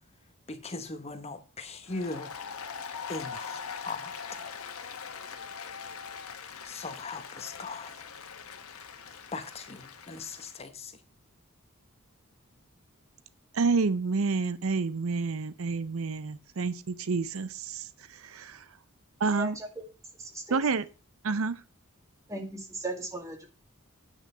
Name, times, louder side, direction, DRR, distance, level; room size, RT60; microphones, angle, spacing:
voice 1, 0.5-2.3 3.1-4.1 6.6-8.0 9.3-11.0, left 3 dB, 30° left, 1.0 m, -39 dB
Applause, 1.8-10.6, left 6 dB, 90° left, 1.2 m, -42 dB
voice 2, 13.5-18.6 19.2-19.6 20.5-20.9 21.2-21.6, right 4 dB, 70° right, 0.6 m, -29 dB
voice 3, 19.3-19.7 20.2-20.6 22.3-23.5, right 2 dB, 15° right, 2.0 m, -37 dB
9.2 x 6.0 x 5.5 m
head